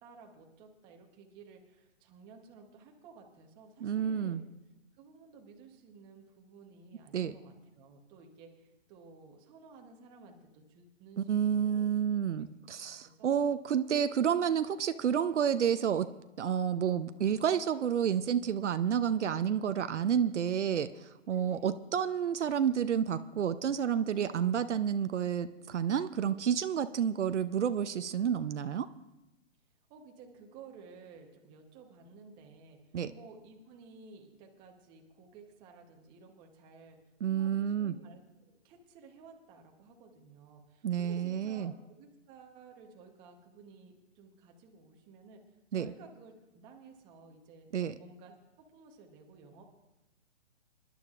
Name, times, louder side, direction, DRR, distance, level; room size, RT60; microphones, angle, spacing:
voice 1, 0.0-4.4 4.9-12.5 13.0-13.5 21.3-21.8 29.9-45.4 45.7-47.7 48.0-49.6, right 5 dB, 10° right, 2 dB, 0.9 m, -55 dB
voice 2, 3.8-4.4 7.1-7.3 11.2-16.1 16.4-28.9 32.9-33.1 37.2-37.9 40.8-41.7 45.7-45.9 47.7-47.9, right 8 dB, 65° right, 11 dB, 0.7 m, -30 dB
26.5 x 11.5 x 2.4 m, 0.97 s
hypercardioid pair, 155°, 38 cm